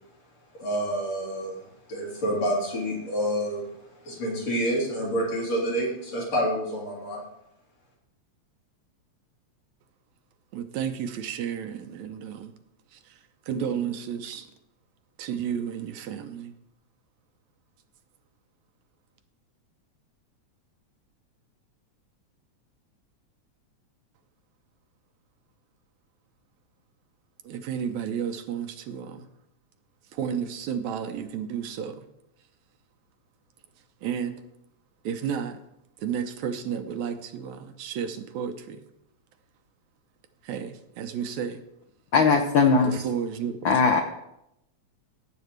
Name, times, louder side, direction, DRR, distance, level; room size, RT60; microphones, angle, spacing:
voice 1, 0.6-3.7 4.0-7.2, equal, 60° left, -5 dB, 4.7 m, -28 dB
voice 2, 10.5-12.5 12.9-14.5 15.2-16.5 27.4-29.3 30.1-32.1 34.0-34.4 35.0-35.6 36.0-38.8 40.4-41.6 42.9-43.7, right 7 dB, 75° right, 8 dB, 2.0 m, -32 dB
voice 3, 42.1-43.0 43.6-44.0, left 5 dB, 75° left, 4 dB, 1.1 m, -19 dB
17.0 x 8.3 x 3.3 m, 0.82 s
omnidirectional pair, 3.3 m